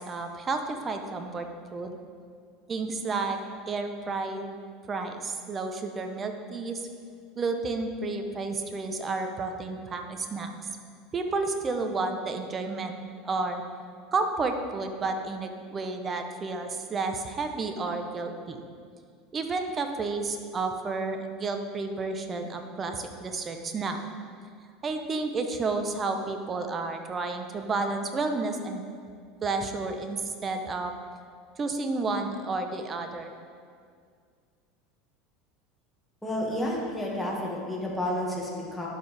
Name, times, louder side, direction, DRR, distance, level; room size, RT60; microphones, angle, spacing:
voice 1, 0.0-2.0 2.7-3.4 3.7-4.6 4.9-6.9 7.4-10.5 11.1-13.0 13.2-13.6 14.1-18.6 19.3-24.0 24.8-28.8 29.4-30.9 31.6-33.3, right 3 dB, 30° right, 6 dB, 0.8 m, -31 dB
voice 2, 36.2-38.9, left 1 dB, 5° left, -4 dB, 1.8 m, -31 dB
11.5 x 4.6 x 3.4 m, 2.1 s
hypercardioid pair, 80°, 0 cm